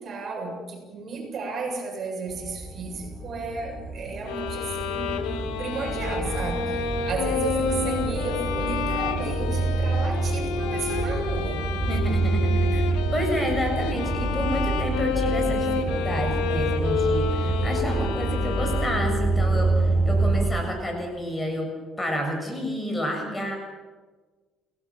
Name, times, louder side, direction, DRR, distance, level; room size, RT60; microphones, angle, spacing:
voice 1, 0.0-11.6, right 3 dB, 45° right, 2 dB, 7.8 m, -33 dB
sound 1, 2.3-20.5, right 3 dB, 15° right, 7.5 m, -27 dB
sound 2, 4.3-19.4, left 6 dB, 90° left, 2.5 m, -30 dB
voice 2, 11.9-21.7 22.0-23.6, equal, 15° left, 3 dB, 7.0 m, -30 dB
29.0 x 18.5 x 7.6 m, 1.3 s
cardioid pair, 105°, 0 cm